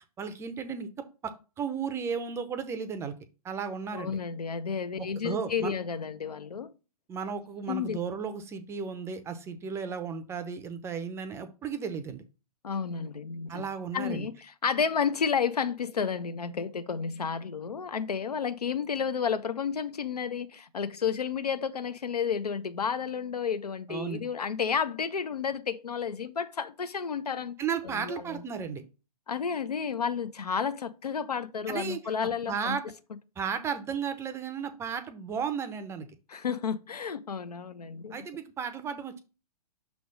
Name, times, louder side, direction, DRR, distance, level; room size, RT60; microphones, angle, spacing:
voice 1, 0.2-3.1 3.4-4.2 5.2-5.7 7.1-12.2 13.5-14.3 23.9-24.2 27.6-28.8 31.7-32.1 32.5-32.8 33.4-36.1 38.1-39.2, right 6 dB, 15° right, 0.5 m, -34 dB
voice 2, 3.9-6.7 7.7-8.0 12.6-13.6 13.9-14.3 14.6-27.5 27.8-28.4 29.3-32.8 36.3-38.3, left 6 dB, 75° left, 0.6 m, -31 dB
6.1 x 3.4 x 5.2 m
figure-of-eight pair, 115°, 20 cm